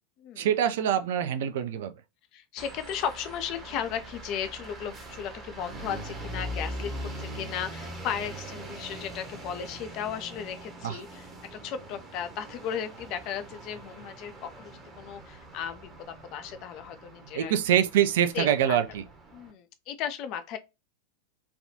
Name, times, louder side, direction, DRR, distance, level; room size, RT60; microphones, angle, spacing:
voice 1, 0.4-1.9 10.8-11.0 17.3-19.0, right 10 dB, 55° right, 0.3 m, -25 dB
voice 2, 2.3-17.5 18.3-18.8 19.3-20.6, left 8 dB, 40° left, 0.4 m, -36 dB
sound 1, 2.6-19.5, right 1 dB, 20° right, 0.8 m, -42 dB
3.4 x 2.2 x 2.6 m
figure-of-eight pair, 90°, 0 cm